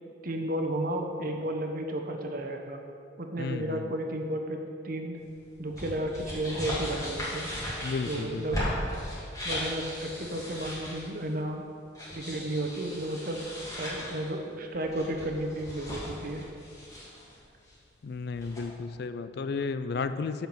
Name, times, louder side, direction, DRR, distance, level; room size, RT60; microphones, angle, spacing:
voice 1, 0.2-2.8 3.2-5.2 5.6-7.5 8.1-8.6 9.4-11.6 12.1-16.4, right 1 dB, 45° right, 3 dB, 0.9 m, -33 dB
voice 2, 3.4-3.9 7.8-8.4 18.0-20.5, left 4 dB, 55° left, 11 dB, 0.4 m, -33 dB
sound 1, 5.5-11.2 11.9-14.3 14.7-17.4 17.7-17.8 18.1-18.6, equal, 20° left, 2.3 m, -37 dB
7.3 x 5.8 x 7.5 m, 2.4 s
head